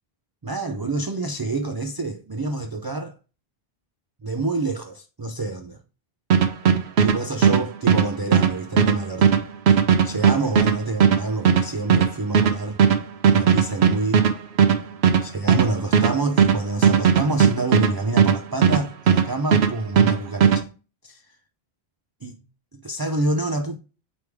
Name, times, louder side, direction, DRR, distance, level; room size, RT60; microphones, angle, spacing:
voice 1, 0.4-3.1 4.2-5.8 7.0-9.3 9.7-9.8 10.0-12.8 13.3-14.2 15.2-20.6 21.0-21.2 22.2-22.4 22.7-23.8, right 2 dB, 35° right, 0.4 m, -27 dB
sound 1, 6.3-19.3 19.5-20.6, right 7 dB, 80° right, 1.1 m, -17 dB
8.4 x 3.5 x 3.4 m
omnidirectional pair, 1.1 m